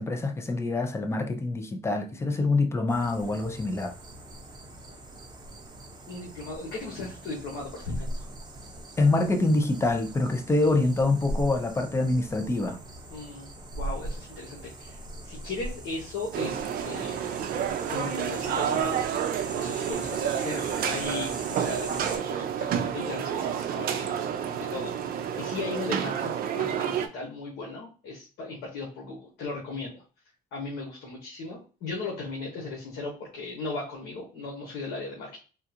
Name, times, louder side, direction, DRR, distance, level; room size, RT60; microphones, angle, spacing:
voice 1, 0.0-3.9 9.0-12.8, left 2 dB, 15° left, 0.5 m, -25 dB
sound 1, 2.9-22.2, right 1 dB, 25° right, 0.9 m, -41 dB
voice 2, 6.1-8.2 13.1-17.3 17.9-19.0 19.5-24.3 24.6-30.0 30.5-35.4, left 3 dB, 85° left, 1.1 m, -37 dB
sound 2, 16.3-27.1, right 8 dB, 60° right, 0.4 m, -29 dB
3.7 x 2.3 x 2.8 m
cardioid pair, 110°, 17 cm